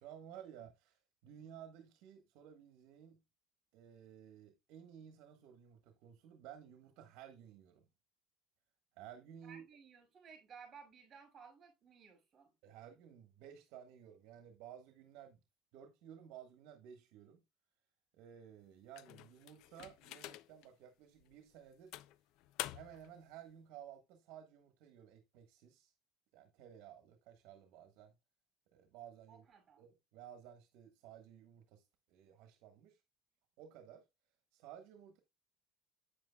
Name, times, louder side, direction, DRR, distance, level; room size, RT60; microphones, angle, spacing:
voice 1, 0.0-3.2 3.7-7.8 9.0-9.6 12.6-15.4 15.7-17.4 18.1-21.9 22.7-25.9 26.3-28.1 28.7-29.4 29.8-33.0 33.6-34.0 34.5-35.2, right 9 dB, 70° right, 1.3 m, -55 dB
voice 2, 9.4-12.5 29.3-29.8, right 6 dB, 35° right, 5.7 m, -57 dB
sound 1, 18.9-20.7 21.2-21.3 21.9-23.1, left 15 dB, 70° left, 0.4 m, -47 dB
8.7 x 8.0 x 2.3 m
cardioid pair, 135°, 0 cm